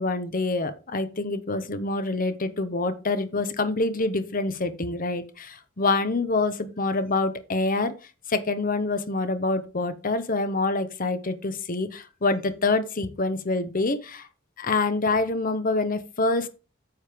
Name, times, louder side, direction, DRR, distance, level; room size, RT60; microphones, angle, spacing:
voice 1, 0.0-8.0 8.3-14.3 14.6-16.5, left 3 dB, 45° left, 11 dB, 1.0 m, -26 dB
9.7 x 6.4 x 3.6 m, 0.33 s
head